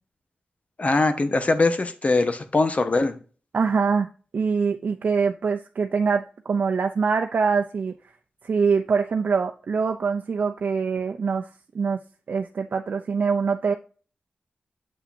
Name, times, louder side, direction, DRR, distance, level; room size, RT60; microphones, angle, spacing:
voice 1, 0.8-3.2, left 3 dB, 50° left, 9 dB, 1.2 m, -22 dB
voice 2, 3.5-4.1 4.3-7.9 8.4-11.5 11.7-12.0 12.3-13.7, right 5 dB, 75° right, 5 dB, 0.6 m, -24 dB
8.0 x 5.8 x 2.7 m, 0.38 s
cardioid pair, 50°, 3 cm